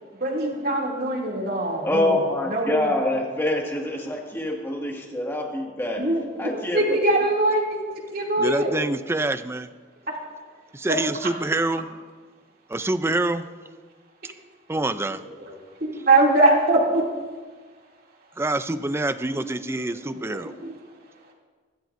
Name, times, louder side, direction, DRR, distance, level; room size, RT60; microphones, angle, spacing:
voice 1, 0.1-2.2 2.5-3.0 6.0-8.7 10.1-10.2 10.9-11.0 11.2-11.3 15.1-15.5 15.8-17.0 19.2-20.8, right 2 dB, 50° right, 2.7 m, -23 dB
voice 2, 1.8-6.1 6.4-7.0, left 1 dB, 10° left, 1.9 m, -26 dB
voice 3, 8.4-9.7 10.7-11.9 12.7-13.5 14.2-14.3 14.7-15.2 18.4-20.5, right 2 dB, 15° right, 0.4 m, -26 dB
24.5 x 13.0 x 2.6 m
head